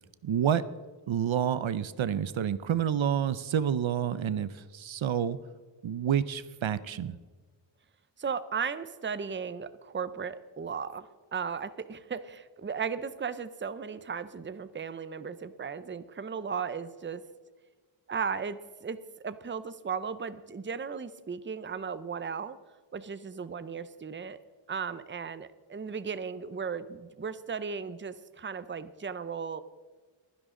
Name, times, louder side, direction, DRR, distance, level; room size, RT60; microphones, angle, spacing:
voice 1, 0.2-0.7 1.1-5.4 5.8-7.2, right 9 dB, 75° right, 16 dB, 0.6 m, -29 dB
voice 2, 8.2-17.2 18.1-22.6 22.9-24.4 24.7-29.6, right 6 dB, 25° right, 14 dB, 0.6 m, -36 dB
23.0 x 10.5 x 3.7 m, 1.4 s
wide cardioid pair, 95°, 47 cm